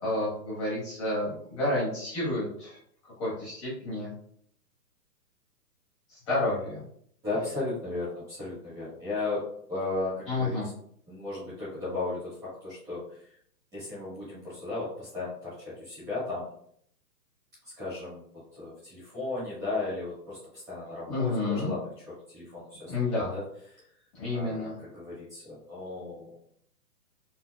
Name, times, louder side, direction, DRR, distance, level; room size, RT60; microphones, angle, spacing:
voice 1, 0.0-2.8 3.2-4.1 6.1-6.8 10.3-10.7 21.1-21.7 22.9-23.3 24.1-24.7, left 2 dB, 20° left, -9 dB, 0.9 m, -30 dB
voice 2, 7.2-10.6 11.1-13.3 13.7-16.5 17.6-23.4 24.3-26.3, left 3 dB, 5° right, -11 dB, 0.9 m, -35 dB
4.3 x 2.2 x 2.2 m, 0.65 s
hypercardioid pair, 165°, 50 cm